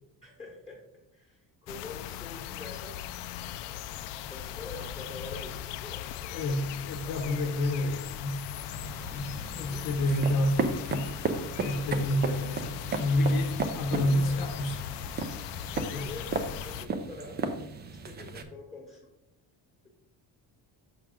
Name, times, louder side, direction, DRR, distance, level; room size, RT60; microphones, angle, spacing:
voice 1, 0.2-0.8 1.1-3.0 3.6-3.9 4.1-6.6 7.2-7.6 9.0-9.9 14.2-14.4 15.5-16.3 16.6-17.5 17.8-19.1, left 3 dB, 15° left, -3 dB, 1.1 m, -46 dB
sound 1, 1.7-16.9, left 11 dB, 90° left, 0.5 m, -39 dB
voice 2, 6.3-8.4 9.1-11.1 11.6-14.8 15.9-16.1, left 1 dB, 60° left, 4 dB, 0.9 m, -29 dB
sound 2, 8.6-18.4, right 4 dB, 25° right, 0.4 m, -35 dB
6.2 x 5.9 x 3.6 m, 0.81 s
cardioid pair, 180°, 41 cm